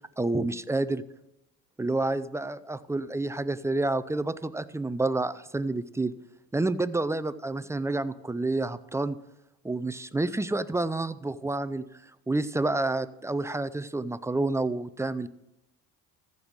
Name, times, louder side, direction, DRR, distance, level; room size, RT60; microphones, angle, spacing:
voice 1, 0.2-1.0 1.8-6.1 6.5-9.2 9.6-11.8 12.3-15.3, right 2 dB, 10° right, 13 dB, 0.4 m, -29 dB
14.0 x 5.4 x 6.3 m, 0.91 s
supercardioid pair, 85°, 40 cm